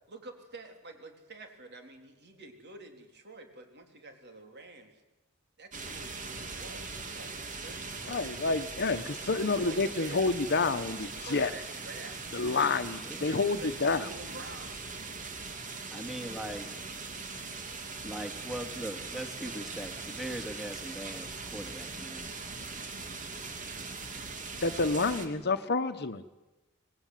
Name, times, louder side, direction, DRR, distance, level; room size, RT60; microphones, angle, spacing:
voice 1, 0.1-4.9 5.6-8.8 9.4-12.3 13.1-15.1, right 2 dB, 55° right, 5 dB, 3.8 m, -48 dB
sound 1, 5.7-25.3, right 4 dB, 40° right, 2.7 m, -41 dB
voice 2, 8.1-11.5 12.3-14.1 24.6-26.3, left 3 dB, 50° left, 11 dB, 1.2 m, -29 dB
voice 3, 12.4-13.3 15.9-16.7 18.0-22.3 25.3-25.5, right 1 dB, ahead, 3 dB, 2.8 m, -41 dB
25.5 x 19.5 x 9.3 m, 1.1 s
head